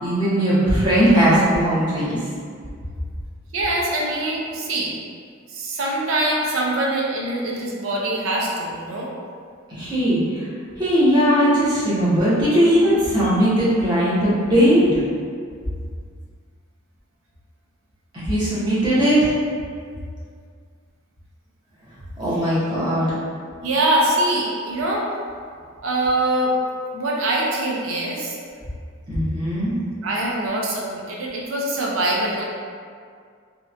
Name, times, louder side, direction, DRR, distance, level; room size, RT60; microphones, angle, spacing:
voice 1, 0.0-2.2 9.7-10.2 10.8-15.0 18.1-19.3 22.2-23.1 29.1-29.7, equal, 20° right, -10 dB, 0.7 m, -18 dB
voice 2, 3.5-4.9 5.5-9.1 23.6-25.1 25.8-26.6 26.9-28.4 30.0-32.4, right 1 dB, 75° right, -3 dB, 0.5 m, -23 dB
2.8 x 2.1 x 2.4 m, 2.1 s
head